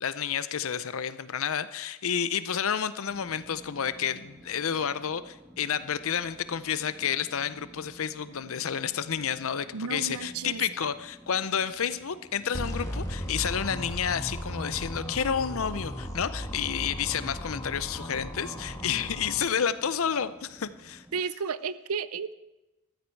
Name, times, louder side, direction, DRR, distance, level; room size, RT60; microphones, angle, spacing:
voice 1, 0.0-21.1, left 8 dB, 65° left, 14 dB, 0.6 m, -30 dB
sound 1, 3.1-21.2, right 1 dB, 10° right, 0.7 m, -52 dB
voice 2, 9.7-10.6 21.1-22.3, right 5 dB, 80° right, 16 dB, 0.6 m, -33 dB
sound 2, 12.5-19.4, equal, 15° left, 1.4 m, -36 dB
14.0 x 13.5 x 4.6 m, 1.0 s
head